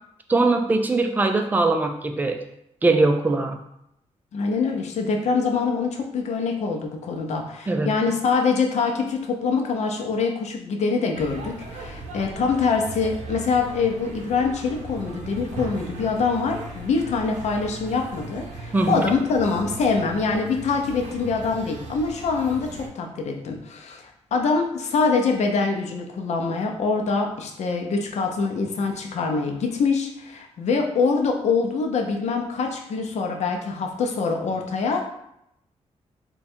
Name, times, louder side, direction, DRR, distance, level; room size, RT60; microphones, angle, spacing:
voice 1, 0.3-2.4 2.8-3.6 7.7-7.9 18.7-19.0, right 3 dB, 15° right, 5 dB, 0.3 m, -21 dB
voice 2, 4.3-35.1, left 4 dB, 70° left, 3 dB, 0.6 m, -24 dB
sound 1, 11.1-22.9, right 3 dB, 85° right, 0.7 m, -38 dB
3.7 x 2.3 x 4.3 m, 0.79 s
wide cardioid pair, 150°, 12 cm